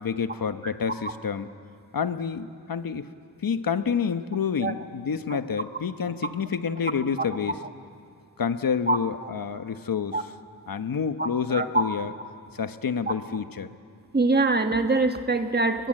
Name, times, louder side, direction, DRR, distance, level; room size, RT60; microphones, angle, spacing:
voice 1, 0.0-1.5 1.9-3.1 3.4-7.6 8.4-10.3 10.7-12.1 12.5-13.8, left 6 dB, 65° left, 10 dB, 1.1 m, -28 dB
voice 2, 11.2-11.8 14.1-15.9, right 3 dB, 25° right, 6 dB, 1.5 m, -23 dB
29.5 x 21.0 x 7.7 m, 2.3 s
wide cardioid pair, 80°, 37 cm